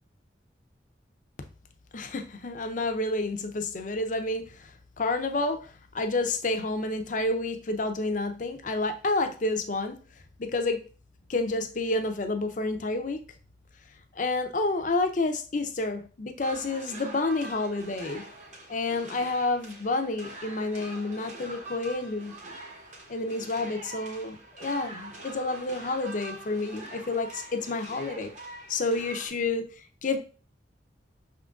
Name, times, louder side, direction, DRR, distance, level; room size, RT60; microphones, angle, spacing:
voice 1, 1.9-10.0 10.4-10.8 11.3-13.2 14.1-18.2 18.7-22.3 23.1-28.3 28.7-30.2, left 2 dB, 45° left, 7 dB, 0.6 m, -29 dB
sound 1, 16.4-29.3, right 2 dB, 45° right, 1.0 m, -44 dB
6.0 x 3.7 x 2.4 m, 0.37 s
head